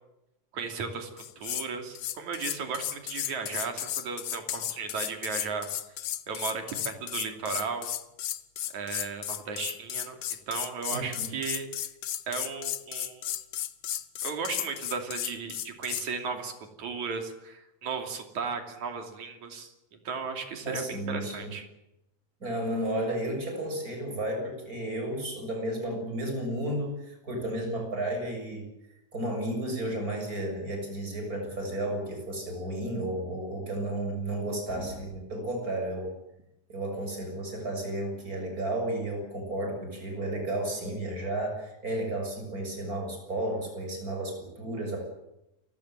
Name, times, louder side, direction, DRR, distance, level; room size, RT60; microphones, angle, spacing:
voice 1, 0.5-5.7 6.3-7.9 8.7-10.2 10.5-11.7 12.3-13.3 14.2-16.5 16.8-19.7 20.1-21.7, right 5 dB, 75° right, 5 dB, 4.3 m, -35 dB
sound 1, 1.2-1.7 2.0-16.1, left 11 dB, 65° left, 1.8 m, -34 dB
voice 2, 10.9-11.4 20.6-21.5 22.4-28.7 29.1-36.1 36.7-45.0, right 1 dB, 30° right, 3 dB, 7.2 m, -33 dB
29.0 x 16.0 x 8.9 m, 0.89 s
omnidirectional pair, 3.3 m